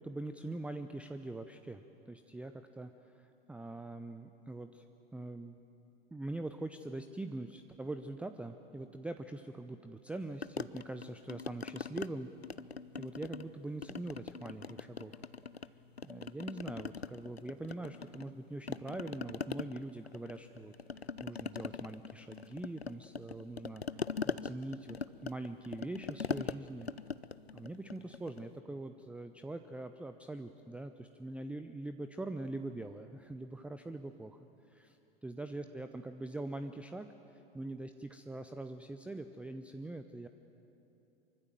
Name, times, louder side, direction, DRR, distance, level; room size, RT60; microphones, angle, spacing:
voice 1, 0.0-4.8 5.1-5.6 6.1-12.3 13.0-15.2 16.0-25.0 25.2-26.9 27.5-34.4 34.7-40.3, right 2 dB, 5° right, 9 dB, 0.7 m, -43 dB
sound 1, 10.4-12.1 12.4-13.5 13.8-15.7 16.0-18.4 18.7-28.5, left 5 dB, 90° left, 0.6 m, -41 dB
25.0 x 23.5 x 7.6 m, 2.9 s
figure-of-eight pair, 85°, 30 cm